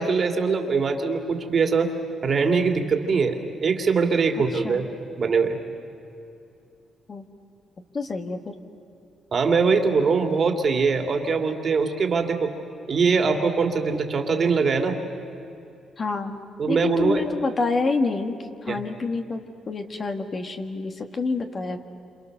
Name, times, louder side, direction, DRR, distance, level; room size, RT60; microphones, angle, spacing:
voice 1, 0.0-1.9 2.2-4.8 5.2-5.6 9.3-12.5 12.9-15.0 16.6-17.2 18.7-18.8, right 5 dB, 45° right, 4 dB, 2.6 m, -22 dB
voice 2, 4.5-4.9 7.1-7.2 7.9-8.5 16.0-16.4 16.7-18.4 18.6-21.8, left 3 dB, 40° left, 5 dB, 1.8 m, -28 dB
28.0 x 27.0 x 6.7 m, 2.7 s
cardioid pair, 90°, 0 cm